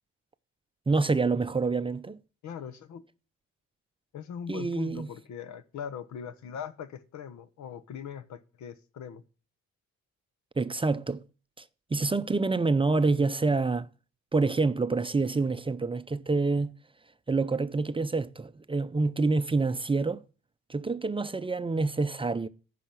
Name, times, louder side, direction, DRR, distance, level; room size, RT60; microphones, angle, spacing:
voice 1, 0.9-2.2 4.5-5.1 10.6-11.2 11.6-11.7 11.9-13.9 14.3-16.7 17.3-20.2 20.7-22.5, right 3 dB, 20° right, 0.5 m, -27 dB
voice 2, 2.4-3.0 4.1-9.2, left 8 dB, 70° left, 1.0 m, -41 dB
9.9 x 5.7 x 7.6 m
cardioid pair, 90°, 30 cm